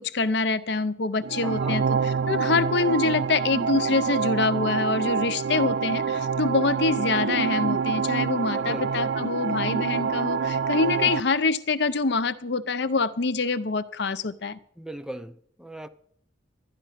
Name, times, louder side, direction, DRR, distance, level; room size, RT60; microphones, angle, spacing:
voice 1, 0.0-14.6, left 4 dB, 60° left, 0.6 m, -25 dB
sound 1, 1.2-11.2, right 6 dB, 65° right, 0.4 m, -26 dB
voice 2, 1.4-1.8 8.5-8.9 14.8-15.9, right 1 dB, 5° right, 0.5 m, -38 dB
12.5 x 10.0 x 5.7 m
head